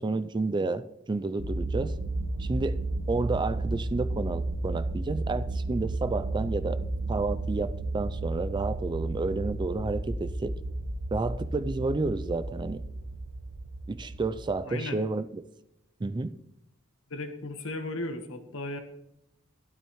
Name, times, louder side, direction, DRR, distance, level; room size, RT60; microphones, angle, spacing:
voice 1, 0.0-1.9 2.4-2.8 3.1-6.8 7.1-10.5 11.1-12.8 13.9-15.4 16.0-16.3, right 3 dB, 20° right, 14 dB, 0.3 m, -30 dB
sound 1, 1.4-14.5, right 2 dB, 80° right, 1.0 m, -33 dB
voice 2, 14.6-15.0 17.1-18.8, left 2 dB, 70° left, 7 dB, 1.3 m, -35 dB
12.0 x 12.0 x 3.1 m, 0.84 s
head